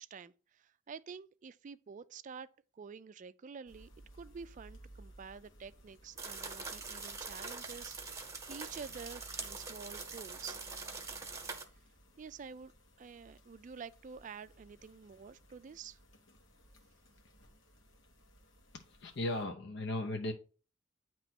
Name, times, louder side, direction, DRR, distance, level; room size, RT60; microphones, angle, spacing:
voice 1, 0.0-2.5 2.7-10.6 12.2-12.7 13.0-16.0, right 6 dB, 40° right, 0.3 m, -49 dB
sound 1, 3.7-19.4, right 1 dB, 85° left, 1.3 m, -59 dB
sound 2, 6.2-11.6, right 4 dB, 15° right, 1.0 m, -44 dB
voice 2, 18.7-20.3, left 2 dB, 65° left, 0.7 m, -37 dB
9.0 x 3.0 x 5.8 m
head